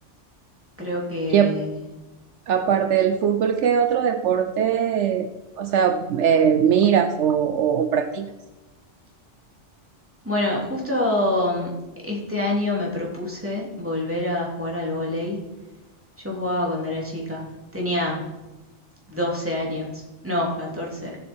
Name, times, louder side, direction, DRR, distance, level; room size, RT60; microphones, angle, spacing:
voice 1, 0.8-1.7 10.2-11.7 12.0-15.4 16.2-17.5 17.7-18.3 19.1-21.2, left 1 dB, 10° right, -3 dB, 3.2 m, -26 dB
voice 2, 1.3-1.6 2.5-5.3 5.6-8.3, right 8 dB, 75° right, 8 dB, 1.0 m, -20 dB
15.5 x 7.5 x 4.5 m, 1.1 s
omnidirectional pair, 1.2 m